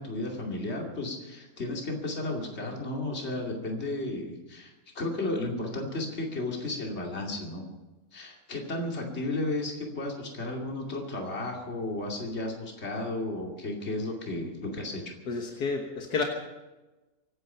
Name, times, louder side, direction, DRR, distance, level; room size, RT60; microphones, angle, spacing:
voice 1, 0.0-7.6 8.1-15.1, left 2 dB, 40° left, 0 dB, 2.8 m, -33 dB
voice 2, 15.3-16.2, left 4 dB, 80° left, 2 dB, 2.0 m, -30 dB
24.0 x 10.0 x 5.6 m, 1.1 s
omnidirectional pair, 1.7 m